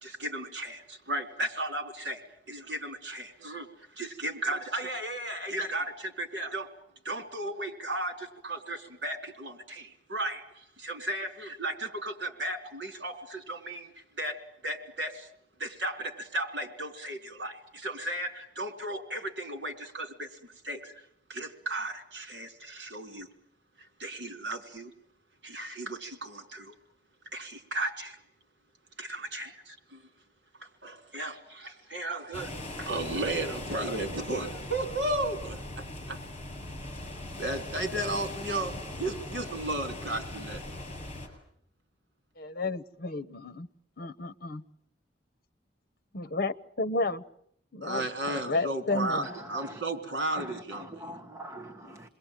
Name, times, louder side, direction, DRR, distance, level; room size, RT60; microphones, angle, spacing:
voice 1, 0.0-3.7 4.0-6.7 7.0-13.9 14.2-15.3 15.6-20.9 21.3-23.3 23.8-24.9 25.4-26.7 27.3-28.2 29.0-30.0 30.6-32.5 32.8-36.2 37.4-40.6 47.8-51.1, right 1 dB, 70° right, 3.9 m, -35 dB
sound 1, 32.3-41.3, left 1 dB, 35° left, 7.1 m, -40 dB
voice 2, 42.4-43.7 44.0-44.6 46.1-47.2 47.7-49.3, left 2 dB, 55° left, 1.1 m, -32 dB
voice 3, 48.9-49.8 50.4-52.1, right 1 dB, 15° right, 1.5 m, -43 dB
28.5 x 22.0 x 9.1 m
head